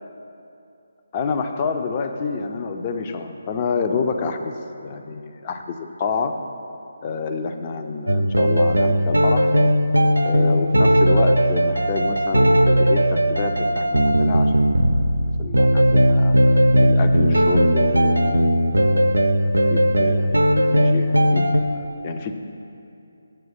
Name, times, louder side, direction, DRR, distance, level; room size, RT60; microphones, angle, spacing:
voice 1, 1.1-4.5 4.8-6.4 7.0-9.5 10.2-14.5 15.4-16.3 16.8-18.6 19.6-21.6 22.0-22.3, left 5 dB, 25° left, 5 dB, 0.5 m, -28 dB
sound 1, 8.1-21.6, equal, 80° right, 0.5 m, -17 dB
7.9 x 7.7 x 5.6 m, 2.7 s
figure-of-eight pair, 150°, 0 cm